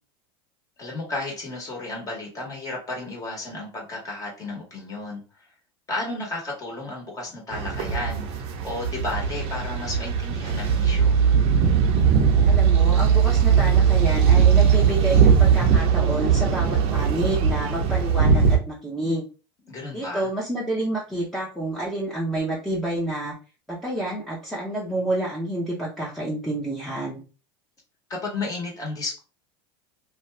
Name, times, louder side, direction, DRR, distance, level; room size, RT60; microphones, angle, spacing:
voice 1, 0.8-5.2 5.9-11.2 19.7-20.3 28.1-29.2, left 2 dB, 25° left, -1 dB, 1.2 m, -33 dB
sound 1, 7.5-18.6, right 7 dB, 50° right, 0.7 m, -19 dB
voice 2, 12.5-19.3 19.9-23.3 23.7-27.2, right 1 dB, ahead, -5 dB, 0.8 m, -29 dB
2.5 x 2.3 x 3.2 m, 0.34 s
supercardioid pair, 115°, 13 cm